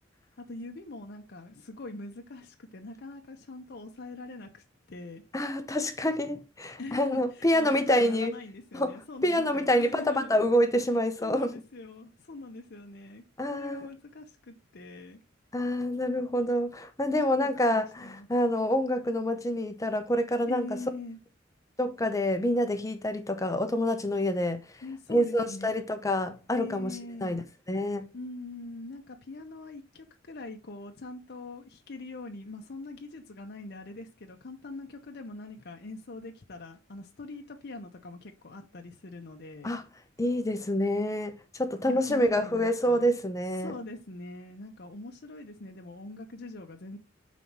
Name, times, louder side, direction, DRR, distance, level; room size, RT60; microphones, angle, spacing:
voice 1, 0.4-5.2 6.8-10.3 11.2-13.2 13.5-15.2 17.7-18.3 20.5-21.2 24.8-25.9 26.5-27.4 28.1-39.8 41.9-43.1 43.6-47.0, left 2 dB, 55° left, 0.7 m, -43 dB
voice 2, 5.3-8.3 8.7-11.5 13.4-13.9 15.5-20.7 21.8-24.6 25.1-28.1 39.6-39.8 40.2-43.7, left 1 dB, 15° left, 0.7 m, -27 dB
5.6 x 4.1 x 4.6 m
head